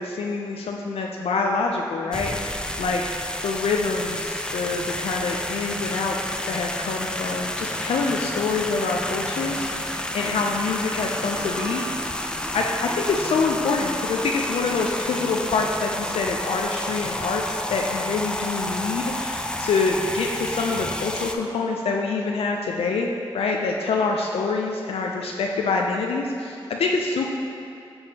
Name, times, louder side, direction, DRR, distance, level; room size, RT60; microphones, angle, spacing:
voice 1, 0.0-3.0 3.4-12.2 12.5-27.3, left 4 dB, 85° left, 0 dB, 0.4 m, -26 dB
sound 1, 2.1-21.4, left 1 dB, 10° left, 0.4 m, -30 dB
Piano, 11.4-13.6, right 8 dB, 20° right, 1.5 m, -44 dB
6.9 x 5.4 x 2.8 m, 2.8 s
cardioid pair, 45°, 10 cm